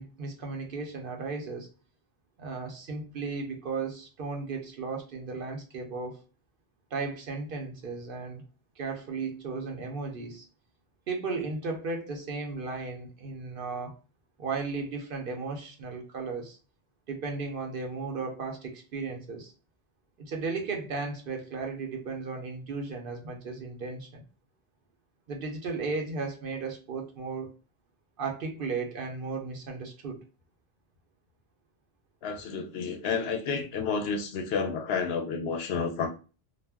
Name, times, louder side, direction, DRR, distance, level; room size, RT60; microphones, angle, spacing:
voice 1, 0.0-1.7 2.4-6.2 6.9-8.4 8.8-10.5 11.1-13.9 14.4-16.6 17.1-19.5 20.2-24.2 25.3-27.5 28.2-30.2, right 4 dB, 60° right, 0.8 m, -35 dB
voice 2, 32.2-36.1, left 5 dB, 70° left, 0.8 m, -30 dB
2.4 x 2.1 x 3.3 m
omnidirectional pair, 1.1 m